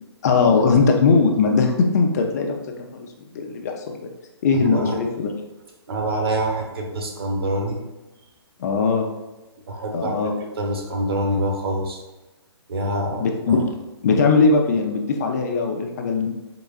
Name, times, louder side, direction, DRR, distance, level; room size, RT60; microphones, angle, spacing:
voice 1, 0.2-2.6 2.9-3.1 3.3-3.9 4.4-5.3 8.6-9.1 9.9-10.3 13.2-13.6 14.0-16.3, left 4 dB, 35° left, 2 dB, 0.5 m, -19 dB
voice 2, 4.6-5.0 5.9-7.8 9.7-12.0 12.7-13.6, right 1 dB, 60° right, 1 dB, 1.0 m, -26 dB
4.5 x 3.8 x 2.4 m, 1.1 s
hypercardioid pair, 150°, 14 cm